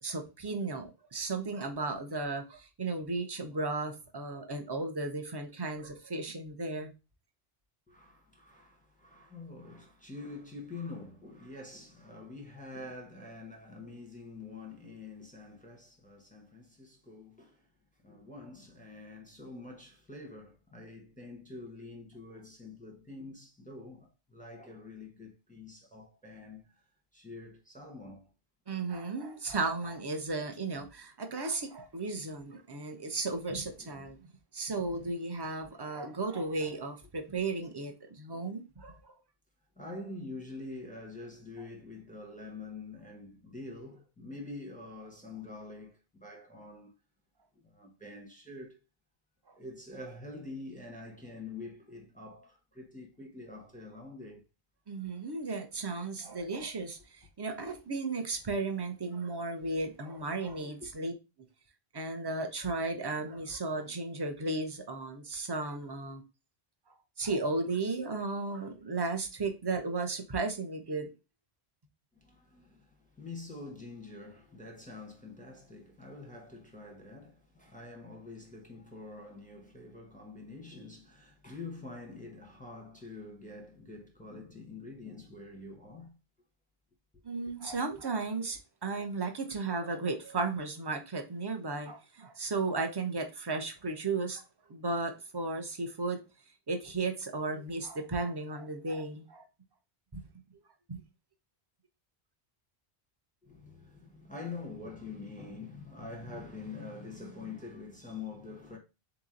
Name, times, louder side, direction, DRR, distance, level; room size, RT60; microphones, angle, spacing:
voice 1, 0.0-6.9 28.7-34.2 34.5-39.0 54.9-61.1 61.9-66.2 67.2-71.1 87.2-94.4 94.7-96.2 96.7-99.4 100.1-100.2 100.9-101.0, right 3 dB, 30° right, 0.6 m, -35 dB
voice 2, 7.9-17.7 18.0-26.8 27.1-28.3 33.8-34.1 38.3-38.5 39.8-46.9 47.5-48.8 49.6-54.4 57.6-57.8 60.8-60.9 72.2-86.2 103.4-108.8, left 3 dB, 10° left, 0.8 m, -46 dB
3.9 x 2.9 x 3.7 m
omnidirectional pair, 1.0 m